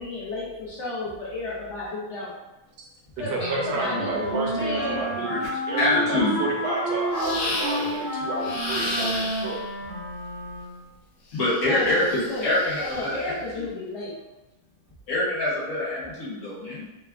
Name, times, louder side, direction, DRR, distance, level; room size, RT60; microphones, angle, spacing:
voice 1, 0.0-2.3 3.2-5.0 11.6-12.0 12.3-14.2, left 2 dB, 70° left, -7 dB, 0.6 m, -32 dB
voice 2, 3.2-9.6, right 2 dB, 75° right, -2 dB, 1.2 m, -31 dB
Wind instrument woodwind instrument, 3.3-10.9, equal, 40° right, 0.7 m, -30 dB
voice 3, 5.8-6.4 11.3-13.4 15.1-16.8, left 1 dB, 50° left, -8 dB, 1.1 m, -25 dB
sound 1, 7.1-8.0 8.4-9.7 11.3-13.2, left 2 dB, 85° left, 1.3 m, -33 dB
3.4 x 2.1 x 2.3 m, 1.0 s
omnidirectional pair, 1.9 m